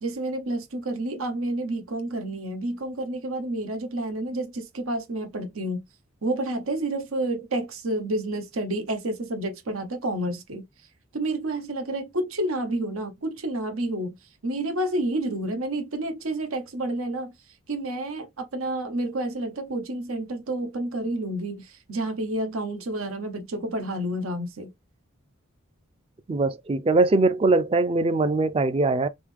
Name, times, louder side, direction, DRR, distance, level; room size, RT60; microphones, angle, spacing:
voice 1, 0.0-5.8 6.2-10.6 11.1-14.2 14.4-17.3 17.7-24.7, right 1 dB, 90° right, 0.9 m, -29 dB
voice 2, 26.3-29.1, right 3 dB, 25° right, 0.3 m, -21 dB
3.6 x 3.1 x 3.3 m
head